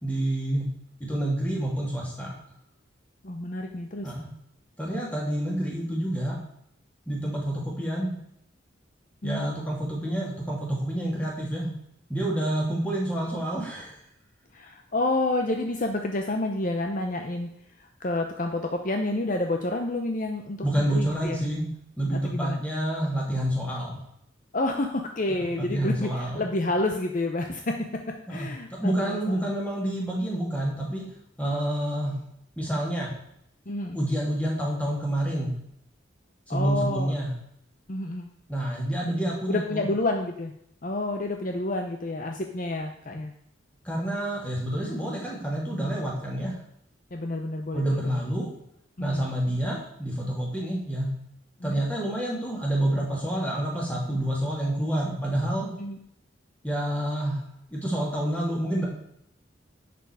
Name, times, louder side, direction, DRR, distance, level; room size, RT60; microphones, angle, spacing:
voice 1, 0.0-0.7 1.0-2.3 4.0-4.3 4.8-6.4 7.1-8.1 9.2-11.7 12.1-14.0 20.6-21.7 22.0-24.0 25.3-26.4 28.3-28.5 28.8-31.1 31.4-32.1 32.6-33.1 33.9-35.5 36.5-37.3 38.5-39.9 43.8-46.5 47.7-48.5 49.0-51.1 51.6-55.7 56.6-57.4 57.7-58.9, right 1 dB, 5° left, -3 dB, 2.9 m, -28 dB
voice 2, 3.2-4.1 5.0-5.1 7.2-7.4 9.2-9.5 14.5-17.5 17.8-21.5 22.1-22.6 24.5-29.5 33.7-34.0 36.5-37.1 37.9-38.3 39.0-39.2 39.5-40.5 40.8-43.3 47.1-48.2 49.0-49.2 51.6-51.8 55.8-56.0, left 2 dB, 40° left, 4 dB, 0.7 m, -29 dB
11.0 x 6.9 x 4.8 m, 0.73 s
head